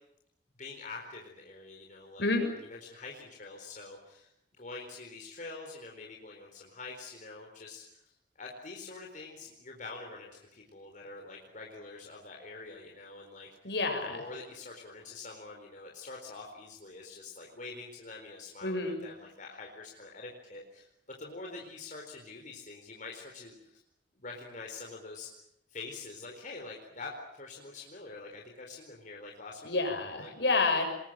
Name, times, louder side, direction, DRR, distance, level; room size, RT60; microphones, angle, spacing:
voice 1, 0.6-13.7 14.0-20.9 21.2-23.8 24.2-25.3 25.7-29.7 30.1-30.3, left 3 dB, 45° left, 0 dB, 4.3 m, -46 dB
voice 2, 13.6-14.2 18.6-19.0 29.6-30.8, left 3 dB, 70° left, 4 dB, 6.8 m, -29 dB
27.0 x 22.0 x 9.1 m, 0.77 s
head